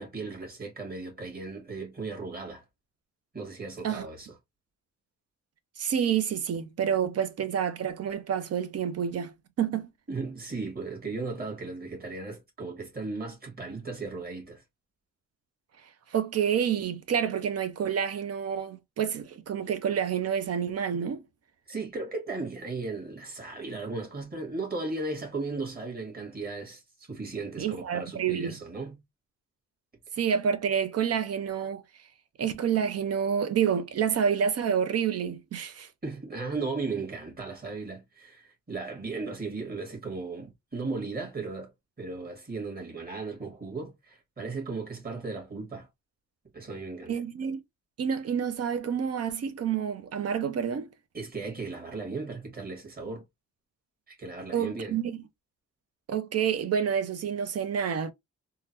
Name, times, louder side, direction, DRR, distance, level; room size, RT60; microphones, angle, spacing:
voice 1, 0.0-2.6 3.3-4.4 10.1-14.6 21.7-29.0 36.0-41.7 42.0-45.9 46.5-47.2 51.1-53.2 54.1-54.9, right 3 dB, 30° right, 1.8 m, -36 dB
voice 2, 5.8-9.9 16.1-21.2 27.6-28.5 30.2-31.8 32.4-35.9 47.1-47.6 48.0-50.9 54.5-55.2 56.1-58.1, right 8 dB, 55° right, 0.7 m, -28 dB
3.7 x 2.2 x 2.8 m
wide cardioid pair, 135°, 29 cm